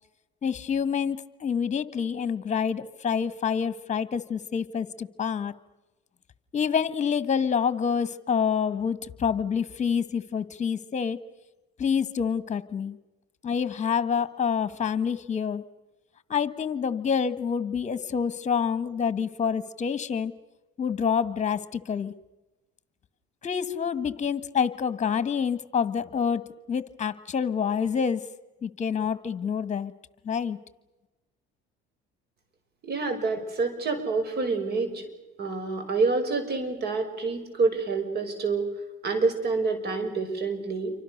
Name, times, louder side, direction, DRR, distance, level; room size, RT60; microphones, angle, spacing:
voice 1, 0.4-5.5 6.5-11.2 11.8-13.0 13.4-15.6 16.3-20.3 20.8-22.1 23.4-28.2 28.6-29.9 30.2-30.6, left 7 dB, 35° left, 15 dB, 1.7 m, -27 dB
voice 2, 32.8-35.1 35.4-38.7 39.0-40.9, right 4 dB, 55° right, 8 dB, 6.3 m, -27 dB
28.5 x 25.0 x 6.7 m, 1.1 s
cardioid pair, 95°, 20 cm